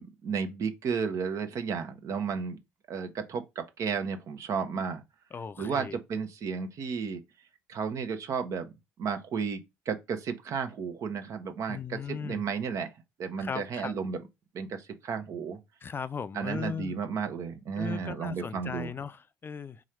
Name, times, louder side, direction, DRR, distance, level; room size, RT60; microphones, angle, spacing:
voice 1, 0.0-2.6 2.9-5.0 5.6-7.2 7.7-8.7 9.0-9.6 9.9-12.9 13.2-14.2 14.5-14.8 15.0-15.6 16.3-18.9, right 6 dB, 60° right, 0.9 m, -33 dB
voice 2, 5.3-6.0 11.7-12.4 13.4-13.9 15.8-17.0 17.8-19.8, left 6 dB, 35° left, 0.4 m, -37 dB
3.8 x 3.1 x 4.3 m
hypercardioid pair, 55°, 6 cm